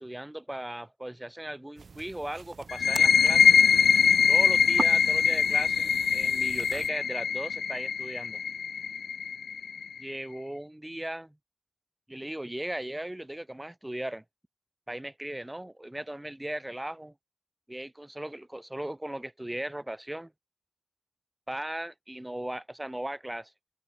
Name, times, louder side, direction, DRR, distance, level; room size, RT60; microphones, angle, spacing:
voice 1, 0.0-3.6 4.3-8.4 10.0-11.4 12.1-14.2 14.9-17.1 17.7-20.3 21.5-23.5, right 1 dB, 10° right, 3.9 m, -37 dB
sound 1, 1.8-6.9, right 5 dB, 60° right, 0.9 m, -42 dB
sound 2, 2.7-10.1, left 6 dB, 90° left, 0.4 m, -23 dB
open air
wide cardioid pair, 85°, 0 cm